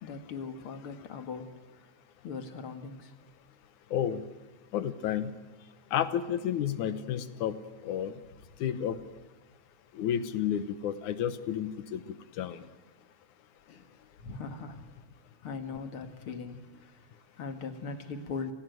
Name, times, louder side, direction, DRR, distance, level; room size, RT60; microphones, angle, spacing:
voice 1, 0.0-1.5 2.2-3.1 13.7-13.9 14.2-14.9 15.4-18.5, left 5 dB, 50° left, 7 dB, 2.5 m, -40 dB
voice 2, 3.9-4.2 4.7-5.3 5.9-7.6 7.8-8.2 8.6-9.0 9.9-12.6, left 9 dB, 80° left, 12 dB, 2.6 m, -31 dB
29.5 x 17.5 x 9.4 m, 1.2 s
omnidirectional pair, 3.4 m